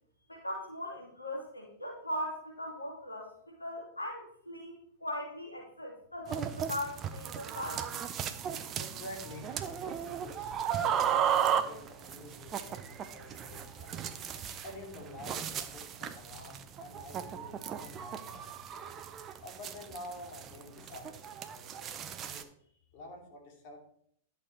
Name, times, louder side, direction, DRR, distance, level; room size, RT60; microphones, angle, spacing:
voice 1, 0.3-7.8, left 1 dB, 90° left, 0 dB, 2.9 m, -39 dB
sound 1, 6.3-22.4, right 8 dB, 30° right, 0.9 m, -35 dB
voice 2, 8.8-21.9 22.2-22.4 22.9-23.8, left 2 dB, 45° left, 1 dB, 2.8 m, -49 dB
11.5 x 7.0 x 4.7 m, 0.66 s
figure-of-eight pair, 100°, 0 cm